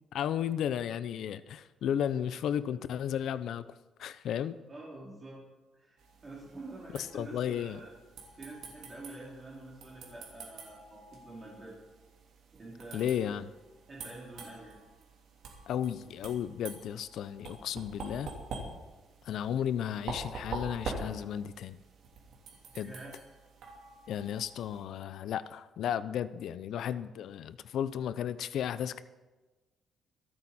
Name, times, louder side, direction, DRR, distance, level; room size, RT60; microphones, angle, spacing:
voice 1, 0.1-3.7 4.0-4.6 6.9-7.8 12.9-13.5 15.7-18.3 19.2-21.8 22.7-22.9 24.1-29.0, left 9 dB, 65° left, 14 dB, 0.6 m, -34 dB
voice 2, 4.7-5.4 5.7-7.9 8.3-11.7 12.5-13.3 13.9-14.8 22.7-23.1, right 2 dB, 25° right, -5 dB, 2.9 m, -47 dB
sound 1, 6.0-24.8, right 3 dB, 70° right, 3.4 m, -46 dB
26.0 x 8.9 x 4.3 m, 1.2 s
cardioid pair, 165°, 0 cm